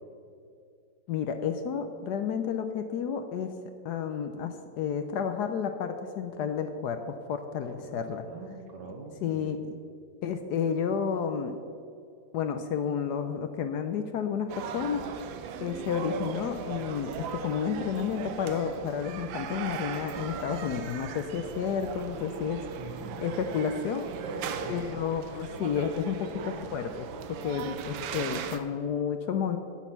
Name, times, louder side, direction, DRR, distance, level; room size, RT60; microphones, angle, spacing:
voice 1, 1.1-3.5 3.8-8.2 9.2-9.7 10.2-11.6 12.3-15.1 15.6-22.6 23.2-24.1 24.7-29.6, left 7 dB, 70° left, 8 dB, 1.1 m, -31 dB
voice 2, 7.6-9.5 22.8-23.3 24.2-24.8, right 3 dB, 65° right, 1 dB, 2.0 m, -41 dB
sound 1, 14.5-28.6, right 7 dB, 85° right, 1.5 m, -38 dB
13.0 x 6.3 x 5.8 m, 2.4 s
omnidirectional pair, 2.1 m